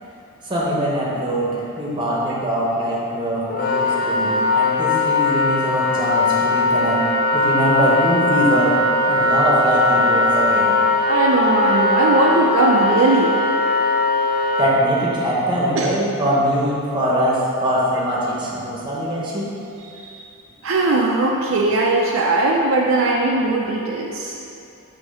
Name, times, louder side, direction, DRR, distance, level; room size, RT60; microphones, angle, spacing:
voice 1, 0.4-7.0 7.3-8.8 9.1-10.8 14.6-19.5, equal, 20° right, -5 dB, 1.0 m, -22 dB
Wind instrument woodwind instrument, 3.5-14.7, left 2 dB, 40° left, 0.5 m, -19 dB
voice 2, 11.0-13.3 15.8-15.9 19.8-20.3 20.6-24.3, right 2 dB, 60° right, -2 dB, 0.5 m, -19 dB
7.1 x 2.8 x 5.5 m, 2.6 s
head